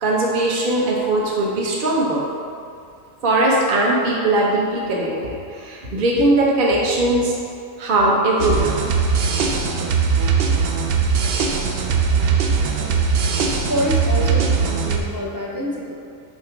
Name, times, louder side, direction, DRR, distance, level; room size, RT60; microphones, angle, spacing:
voice 1, 0.0-2.2 3.2-7.3 7.8-8.7, right 1 dB, 45° right, -4 dB, 1.0 m, -19 dB
sound 1, 8.4-15.0, right 5 dB, 60° right, 0.7 m, -20 dB
voice 2, 13.7-16.0, equal, 20° right, -4 dB, 0.6 m, -26 dB
5.9 x 3.9 x 4.6 m, 2.4 s
omnidirectional pair, 1.4 m